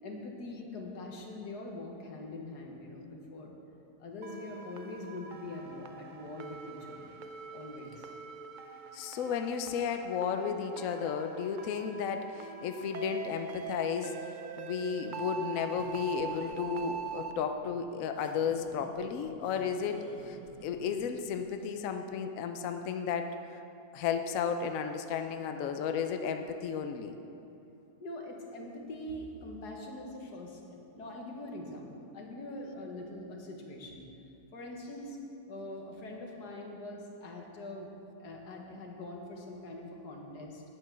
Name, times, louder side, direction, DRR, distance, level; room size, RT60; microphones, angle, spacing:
voice 1, 0.0-3.5 4.0-7.1 7.5-8.1 28.0-34.1 34.5-35.2 35.5-37.9 38.2-40.6, left 1 dB, 85° left, 0 dB, 1.9 m, -43 dB
sound 1, 4.2-17.3, right 6 dB, 90° right, 0.4 m, -43 dB
voice 2, 8.9-14.1 14.6-20.4 20.6-23.4 23.9-27.1, left 7 dB, 65° left, 6 dB, 1.0 m, -33 dB
sound 2, 15.7-21.0, right 1 dB, 55° right, 1.8 m, -52 dB
9.5 x 8.9 x 6.1 m, 2.8 s
omnidirectional pair, 1.7 m